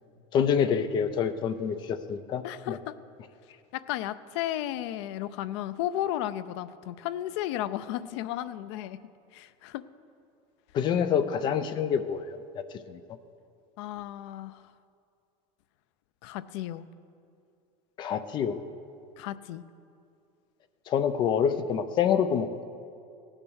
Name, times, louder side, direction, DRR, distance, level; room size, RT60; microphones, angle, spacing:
voice 1, 0.3-2.8 10.7-13.0 18.0-18.6 20.9-22.6, left 7 dB, 30° left, 12 dB, 0.5 m, -27 dB
voice 2, 2.4-2.9 3.7-9.0 9.3-9.8 13.8-14.6 16.2-16.9 19.2-19.6, left 13 dB, 75° left, 15 dB, 0.5 m, -34 dB
16.0 x 8.9 x 6.3 m, 2.5 s
cardioid pair, 170°, 15 cm